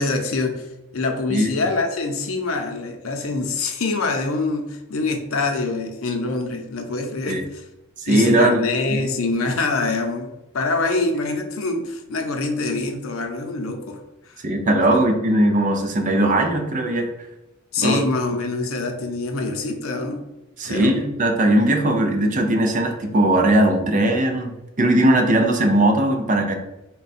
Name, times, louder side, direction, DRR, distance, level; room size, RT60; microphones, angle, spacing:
voice 1, 0.0-7.6 8.1-10.3 10.5-14.0 14.3-14.4 14.8-15.0 17.7-20.2 20.7-20.9, left 3 dB, 85° left, 4 dB, 0.6 m, -25 dB
voice 2, 8.0-8.6 14.4-17.1 17.8-18.0 20.6-26.5, right 1 dB, 40° right, 4 dB, 0.5 m, -19 dB
3.7 x 2.3 x 4.1 m, 0.94 s
head